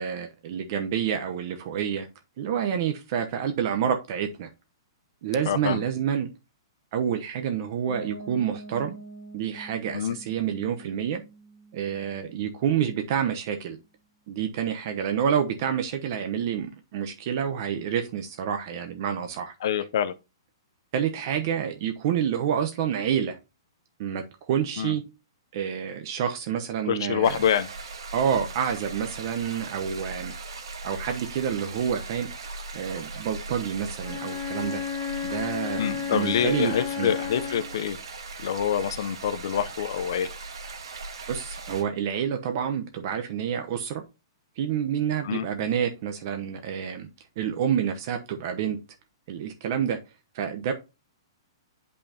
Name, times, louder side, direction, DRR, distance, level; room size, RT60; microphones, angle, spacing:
voice 1, 0.0-2.1 2.4-4.5 5.2-6.3 6.9-8.9 9.3-11.2 11.7-13.8 14.3-19.5 20.9-23.4 24.0-25.0 25.5-27.4 28.1-30.3 30.8-32.3 32.7-34.8 35.2-37.1 41.3-44.0 44.6-47.1 47.4-48.8 49.3-50.0 50.3-50.7, right 8 dB, 45° right, 0.9 m, -28 dB
voice 2, 5.4-5.8 9.9-10.2 19.6-20.1 24.8-25.0 26.8-27.7 35.8-38.0 38.4-40.3 45.2-45.5, left 9 dB, 60° left, 0.7 m, -26 dB
Piano, 7.9-13.6, right 2 dB, 65° right, 2.7 m, -46 dB
sound 1, 27.2-41.8, right 3 dB, 80° right, 2.4 m, -39 dB
Bowed string instrument, 34.0-37.8, left 8 dB, 5° left, 1.9 m, -32 dB
8.7 x 5.4 x 2.8 m
hypercardioid pair, 160°, 3 cm